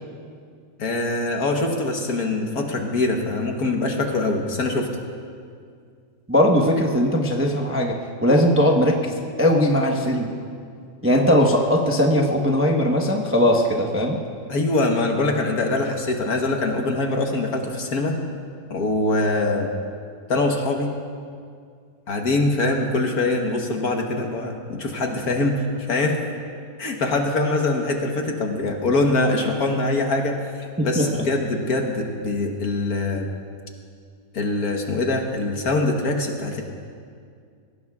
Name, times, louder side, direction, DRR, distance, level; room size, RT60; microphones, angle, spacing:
voice 1, 0.8-4.9 14.5-18.2 18.7-19.7 20.3-20.9 22.1-26.2 26.8-30.4 30.8-33.3 34.3-36.6, left 2 dB, 55° left, 2 dB, 1.5 m, -23 dB
voice 2, 6.3-10.3 11.0-14.2 30.8-31.2, equal, 10° right, 0 dB, 0.6 m, -19 dB
22.0 x 17.0 x 2.4 m, 2.2 s
omnidirectional pair, 2.1 m